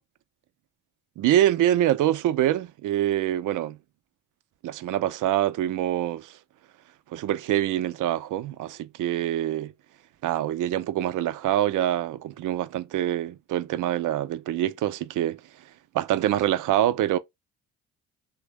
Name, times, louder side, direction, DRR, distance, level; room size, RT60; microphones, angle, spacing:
voice 1, 1.2-3.8 4.6-6.4 7.1-9.7 10.2-15.4 15.9-17.2, right 12 dB, 45° right, 0.5 m, -25 dB
3.2 x 2.2 x 3.0 m
hypercardioid pair, 50°, 44 cm